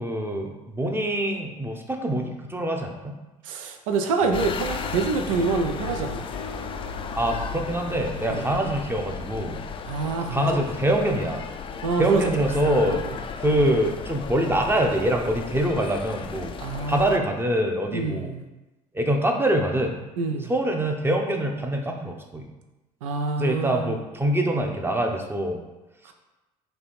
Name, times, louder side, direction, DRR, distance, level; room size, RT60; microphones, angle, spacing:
voice 1, 0.0-3.2 7.1-9.6 10.3-11.5 12.0-13.0 13.4-16.5 16.9-18.3 18.9-20.0 20.5-22.5 23.4-25.6, right 1 dB, 15° right, 2 dB, 0.7 m, -24 dB
voice 2, 3.4-6.3 8.3-8.5 9.9-10.6 11.8-12.5 12.8-13.2 16.6-17.1 17.9-18.4 20.2-20.5 23.0-24.0, right 4 dB, 85° right, 5 dB, 0.5 m, -26 dB
sound 1, 4.2-11.7, left 4 dB, 80° left, 0.6 m, -43 dB
sound 2, 4.3-17.2, left 6 dB, 30° left, 0.4 m, -35 dB
3.4 x 2.8 x 4.2 m, 1.1 s
hypercardioid pair, 70°, 17 cm